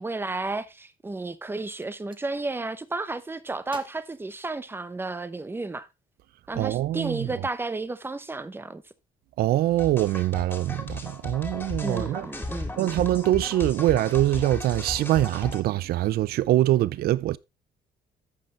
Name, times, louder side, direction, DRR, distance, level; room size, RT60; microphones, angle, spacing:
voice 1, 0.0-5.9 6.5-8.8 11.8-13.0, right 3 dB, 15° right, 0.9 m, -32 dB
Gunshot gunfire, 1.8-2.3 3.7-5.1, right 4 dB, 30° right, 1.3 m, -50 dB
voice 2, 6.5-7.5 9.4-12.3 12.8-17.4, right 14 dB, 65° right, 0.5 m, -24 dB
sound 1, 9.8-15.6, left 2 dB, 10° left, 2.4 m, -35 dB
14.5 x 5.4 x 3.1 m
cardioid pair, 110°, 17 cm